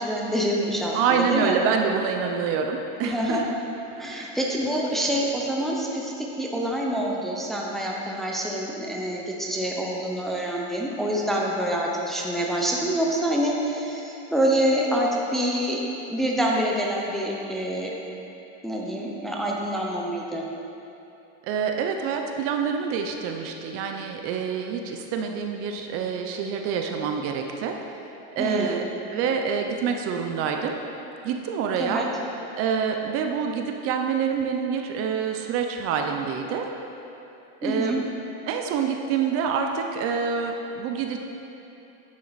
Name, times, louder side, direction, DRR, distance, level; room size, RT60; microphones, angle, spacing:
voice 1, 0.0-1.6 3.0-3.5 4.0-15.8 16.1-17.9 18.6-20.4 28.4-28.8 31.8-32.1 37.6-38.0, equal, ahead, -3 dB, 0.7 m, -26 dB
voice 2, 0.9-3.5 4.1-4.3 21.4-27.8 28.4-28.8 29.1-30.8 31.2-32.1 32.6-36.7 37.6-38.0 38.5-41.2, right 6 dB, 45° right, 4 dB, 0.6 m, -26 dB
9.6 x 7.4 x 4.0 m, 2.9 s
supercardioid pair, 155°, 33 cm